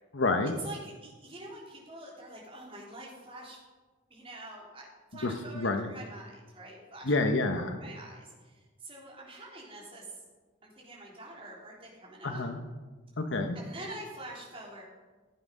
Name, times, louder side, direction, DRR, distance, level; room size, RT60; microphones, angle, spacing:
voice 1, 0.1-0.5 5.2-5.9 7.0-7.8 12.2-12.6 13.2-13.6, left 2 dB, 65° left, 6 dB, 1.0 m, -28 dB
voice 2, 0.6-3.6 4.1-4.9 5.1-7.1 7.5-8.5 8.8-10.0 10.6-12.5 13.6-14.8, right 1 dB, 25° right, -4 dB, 3.6 m, -46 dB
15.5 x 8.7 x 5.4 m, 1.3 s
head